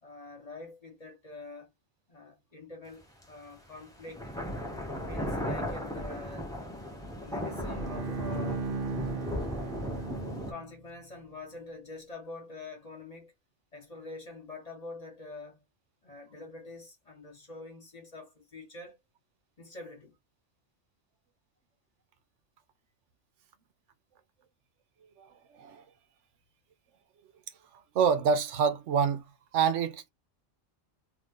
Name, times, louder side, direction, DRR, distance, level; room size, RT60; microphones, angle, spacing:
voice 1, 0.0-1.7 2.1-4.2 4.8-6.5 7.2-8.7 9.8-13.3 13.7-15.7 16.0-19.0 19.6-20.2, left 3 dB, 35° left, 1.3 m, -46 dB
sound 1, 3.2-3.3 4.1-10.5, equal, 5° left, 0.9 m, -36 dB
Bowed string instrument, 7.4-10.9, right 4 dB, 55° right, 0.8 m, -37 dB
voice 2, 25.5-25.8 27.9-29.2 29.5-30.1, right 6 dB, 80° right, 1.0 m, -26 dB
2.7 x 2.5 x 3.6 m
omnidirectional pair, 1.2 m